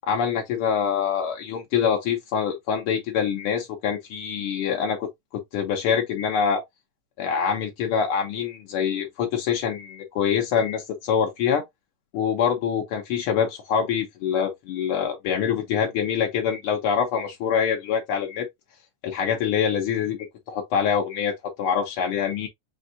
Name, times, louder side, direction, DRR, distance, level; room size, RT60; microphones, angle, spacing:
voice 1, 0.0-6.6 7.2-11.6 12.1-18.5 19.0-20.2 20.5-21.3 21.6-22.5, left 7 dB, 85° left, 1.2 m, -25 dB
6.9 x 2.7 x 2.5 m
omnidirectional pair, 3.4 m